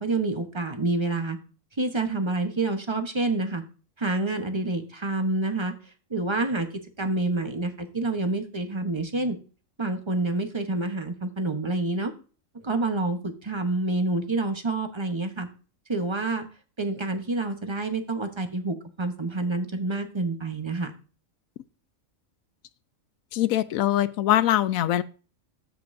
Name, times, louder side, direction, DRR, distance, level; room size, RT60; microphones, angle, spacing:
voice 1, 0.0-1.4 1.8-3.6 4.0-5.7 6.1-6.7 7.0-9.4 9.8-12.1 12.6-15.5 15.9-16.5 16.8-20.9, right 2 dB, 25° right, 7 dB, 1.0 m, -28 dB
voice 2, 23.3-25.0, left 13 dB, 85° left, 16 dB, 1.0 m, -22 dB
13.5 x 5.3 x 2.6 m, 0.36 s
omnidirectional pair, 1.4 m